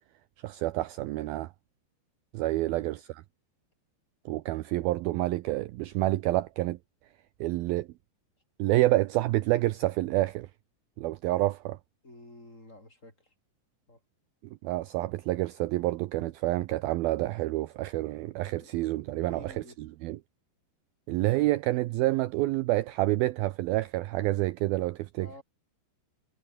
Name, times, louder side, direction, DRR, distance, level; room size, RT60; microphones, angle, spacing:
voice 1, 0.4-1.5 2.3-3.2 4.3-6.8 7.4-7.9 8.6-10.5 11.0-11.8 14.6-20.2 21.1-25.3, right 17 dB, 80° right, 2.1 m, -28 dB
voice 2, 12.0-13.3 13.9-14.0 18.4-18.7 19.1-19.8 25.2-25.4, left 1 dB, 15° left, 7.8 m, -50 dB
omnidirectional pair, 5.2 m